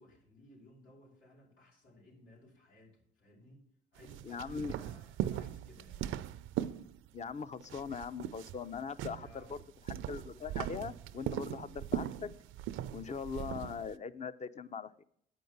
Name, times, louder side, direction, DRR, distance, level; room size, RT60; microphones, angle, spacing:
voice 1, 0.0-3.6 3.9-6.1 9.2-9.5, left 1 dB, 85° left, 4.7 m, -59 dB
sound 1, 4.0-7.3 7.6-13.9, right 12 dB, 80° right, 0.4 m, -40 dB
voice 2, 4.3-4.7 7.1-9.6 10.1-12.3 12.9-15.0, left 6 dB, 35° left, 0.6 m, -41 dB
8.6 x 5.4 x 7.9 m
cardioid pair, 90°, 20 cm